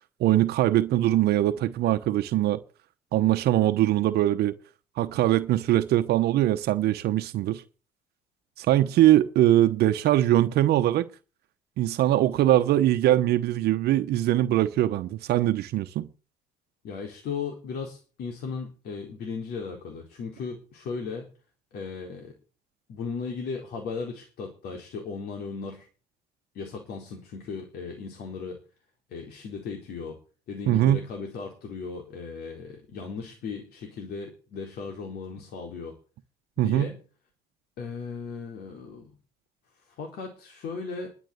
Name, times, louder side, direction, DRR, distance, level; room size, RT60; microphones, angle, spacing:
voice 1, 0.2-2.6 3.1-4.5 5.0-7.6 8.6-11.1 11.8-16.1 30.7-31.0 36.6-36.9, right 13 dB, 75° right, 1.0 m, -22 dB
voice 2, 16.8-21.3 21.7-22.3 22.9-25.9 26.5-28.6 29.1-30.2 30.5-35.9 36.6-37.0 37.8-39.1 40.0-41.1, left 5 dB, 70° left, 4.4 m, -36 dB
11.5 x 8.0 x 8.0 m
cardioid pair, 110°, 17 cm